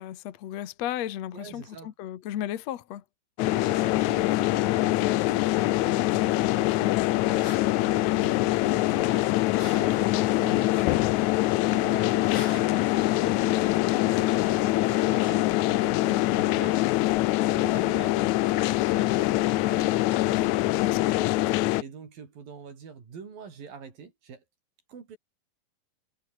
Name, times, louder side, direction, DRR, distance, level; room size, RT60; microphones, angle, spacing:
voice 1, 0.0-3.0 10.3-10.6 20.2-20.5 20.8-21.3, left 12 dB, 60° left, 2.3 m, -35 dB
voice 2, 1.3-1.9 3.4-7.5 7.8-11.1 11.7-16.9 17.5-20.7 21.8-24.4 24.9-25.2, right 6 dB, 90° right, 6.0 m, -44 dB
sound 1, 3.4-21.8, left 18 dB, 80° left, 1.8 m, -24 dB
sound 2, 7.3-14.0, left 3 dB, 40° left, 7.0 m, -47 dB
omnidirectional pair, 3.9 m